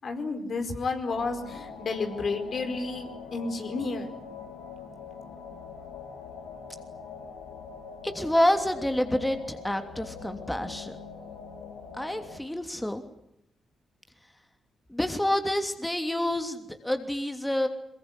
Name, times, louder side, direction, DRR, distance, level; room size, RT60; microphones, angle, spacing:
voice 1, 0.0-4.1, left 3 dB, 55° left, 5 dB, 4.7 m, -31 dB
sound 1, 1.1-12.4, left 5 dB, 80° left, 4.2 m, -43 dB
voice 2, 8.0-11.0 12.0-13.0 14.9-17.7, left 1 dB, 10° left, 7 dB, 3.1 m, -28 dB
23.0 x 22.5 x 9.9 m, 0.79 s
hypercardioid pair, 40°, 0 cm